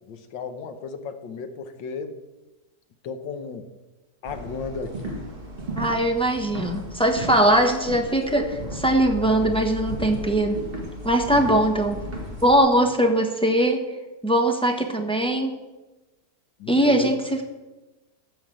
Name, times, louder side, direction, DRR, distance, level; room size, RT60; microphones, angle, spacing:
voice 1, 0.1-2.2 3.0-3.7 4.2-5.3 11.5-11.6 16.6-17.2, left 5 dB, 85° left, 8 dB, 1.7 m, -34 dB
sound 1, 4.2-12.6, equal, 30° right, 2.1 m, -35 dB
voice 2, 5.8-10.6 11.0-12.0 12.4-13.8 14.2-15.5 16.7-17.4, right 1 dB, 5° left, 3 dB, 1.0 m, -21 dB
14.0 x 5.5 x 7.7 m, 1.1 s
omnidirectional pair, 1.9 m